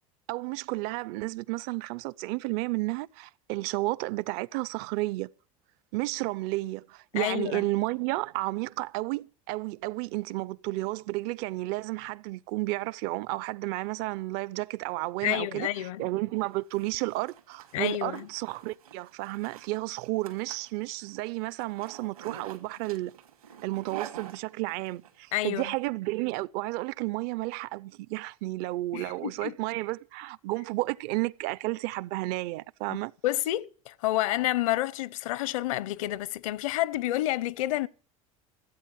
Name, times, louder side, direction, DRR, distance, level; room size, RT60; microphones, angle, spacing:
voice 1, 0.3-5.3 5.9-15.7 16.0-23.1 23.6-33.1, right 20 dB, 60° right, 0.6 m, -32 dB
voice 2, 7.1-7.6 15.2-16.1 17.7-18.3 25.3-25.7 28.9-29.5 32.9-33.0 33.2-37.9, left 15 dB, 70° left, 0.8 m, -29 dB
Zipper (clothing), 16.4-25.1, right 10 dB, 85° right, 2.6 m, -47 dB
16.5 x 8.7 x 7.2 m
hypercardioid pair, 80°, 18 cm